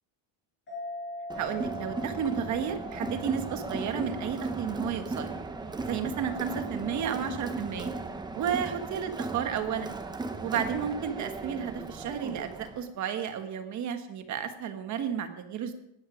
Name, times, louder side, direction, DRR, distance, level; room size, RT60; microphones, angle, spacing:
sound 1, 0.7-7.7, left 1 dB, 25° left, 4.9 m, -44 dB
Crowd, 1.3-12.8, right 3 dB, 10° right, 0.7 m, -36 dB
voice 1, 1.3-5.3 5.8-7.9 8.3-9.9 10.4-15.7, right 8 dB, 35° right, 8 dB, 1.4 m, -32 dB
18.5 x 12.0 x 5.0 m, 0.85 s
cardioid pair, 175°, 48 cm